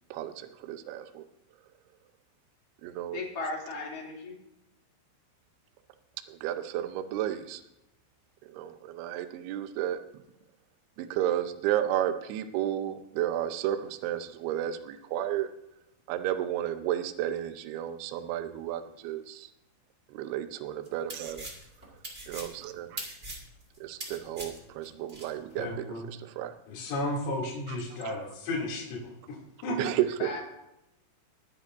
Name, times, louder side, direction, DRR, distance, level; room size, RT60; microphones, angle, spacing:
voice 1, 0.1-1.2 2.8-3.2 6.3-7.6 8.5-10.0 11.0-15.5 16.1-19.5 20.1-21.5 22.3-23.0 23.8-26.5 29.8-30.4, right 11 dB, 90° right, 8 dB, 2.2 m, -32 dB
voice 2, 3.1-4.3 30.2-30.4, left 3 dB, 35° left, -3 dB, 3.0 m, -36 dB
sound 1, 20.8-25.3, right 1 dB, 50° right, 0.7 m, -41 dB
voice 3, 25.5-26.1 26.7-29.9, left 1 dB, 85° left, -3 dB, 5.5 m, -34 dB
20.5 x 10.0 x 2.6 m, 0.85 s
omnidirectional pair, 5.7 m